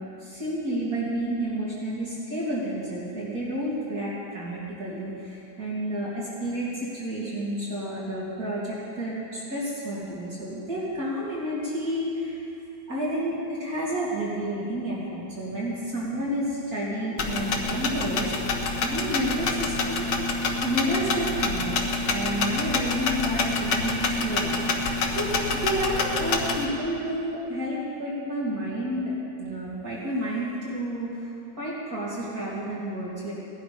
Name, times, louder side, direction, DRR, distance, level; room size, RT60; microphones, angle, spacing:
voice 1, 0.2-12.5 12.9-18.3 18.8-20.1 20.6-25.3 25.6-31.3 31.6-33.3, right 1 dB, 50° right, -7 dB, 3.0 m, -30 dB
sound 1, 17.2-26.7, left 3 dB, 70° left, 1.7 m, -27 dB
17.5 x 11.5 x 5.1 m, 2.7 s
omnidirectional pair, 2.0 m